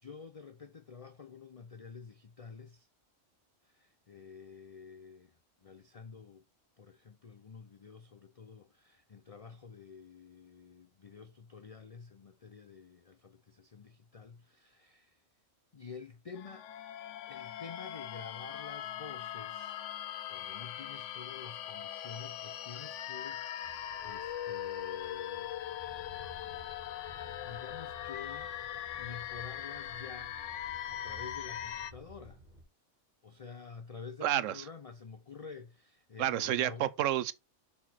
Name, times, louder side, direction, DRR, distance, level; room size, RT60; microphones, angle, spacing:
voice 1, 0.0-2.9 3.6-5.4 5.6-6.4 6.8-15.2 15.7-16.7 17.3-19.9 20.3-25.5 27.4-28.5 28.9-32.4 33.2-36.9, left 5 dB, 40° left, 0.6 m, -49 dB
sound 1, 16.4-31.9, left 11 dB, 75° left, 0.9 m, -41 dB
sound 2, 23.6-32.6, equal, 35° right, 2.8 m, -55 dB
voice 2, 34.2-34.6 36.2-37.3, right 12 dB, 85° right, 1.0 m, -30 dB
6.4 x 4.3 x 5.7 m
omnidirectional pair, 1.3 m